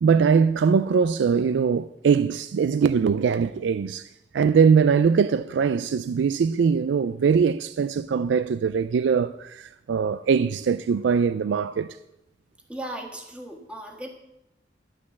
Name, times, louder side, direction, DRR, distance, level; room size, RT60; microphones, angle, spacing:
voice 1, 0.0-4.1 4.3-12.0, right 6 dB, 90° right, 0.3 m, -21 dB
voice 2, 12.7-14.1, right 1 dB, 5° right, 1.7 m, -36 dB
11.5 x 6.1 x 7.4 m
head